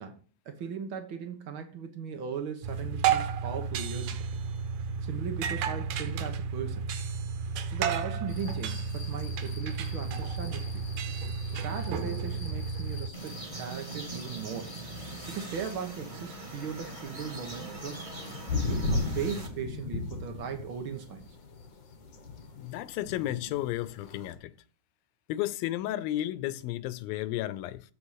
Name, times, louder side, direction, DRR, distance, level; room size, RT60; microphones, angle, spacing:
voice 1, 0.0-4.3 5.0-6.9 7.7-10.8 11.5-14.7 15.3-18.1 18.7-21.3, right 7 dB, 85° right, 1.1 m, -38 dB
sound 1, 2.6-13.1, right 6 dB, 70° right, 2.3 m, -32 dB
sound 2, 8.3-24.3, left 3 dB, 60° left, 1.1 m, -39 dB
sound 3, 13.1-19.5, right 2 dB, 15° right, 1.1 m, -42 dB
voice 2, 22.6-24.5 25.3-27.8, left 14 dB, 85° left, 2.3 m, -33 dB
7.7 x 7.1 x 6.5 m
omnidirectional pair, 4.2 m